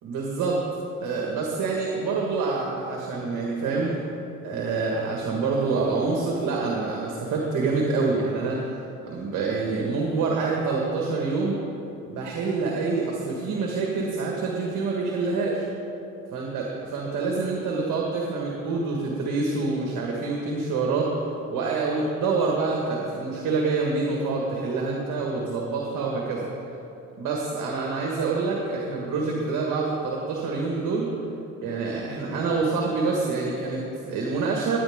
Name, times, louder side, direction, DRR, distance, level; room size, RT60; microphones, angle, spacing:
voice 1, 0.0-0.6 1.0-4.0 4.4-11.6 12.0-15.6 16.3-16.7 16.9-21.2 21.5-26.5 27.2-31.1 31.6-34.8, right 4 dB, 85° right, -2 dB, 1.7 m, -26 dB
18.5 x 9.5 x 3.6 m, 2.8 s
cardioid pair, 90°, 30 cm